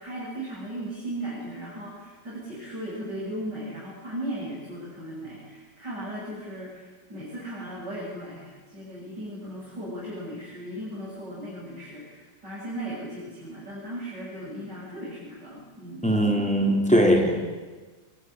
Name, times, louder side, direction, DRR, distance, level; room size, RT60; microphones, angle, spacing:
voice 1, 0.0-16.1, right 1 dB, 65° right, -7 dB, 8.3 m, -37 dB
voice 2, 16.0-17.5, equal, 5° left, 1 dB, 4.4 m, -21 dB
24.5 x 23.0 x 9.9 m, 1.3 s
omnidirectional pair, 2.0 m